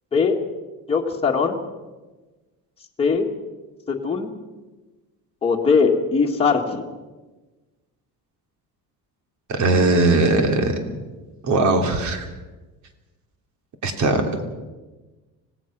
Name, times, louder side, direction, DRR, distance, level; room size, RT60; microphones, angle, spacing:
voice 1, 0.9-1.6 3.0-3.3 3.9-4.3 5.4-6.8, left 5 dB, 15° left, -1 dB, 1.8 m, -20 dB
voice 2, 9.5-10.7 11.4-12.3 13.8-14.3, right 2 dB, 50° right, 4 dB, 3.1 m, -19 dB
25.0 x 18.5 x 6.1 m, 1.2 s
cardioid pair, 165°, 38 cm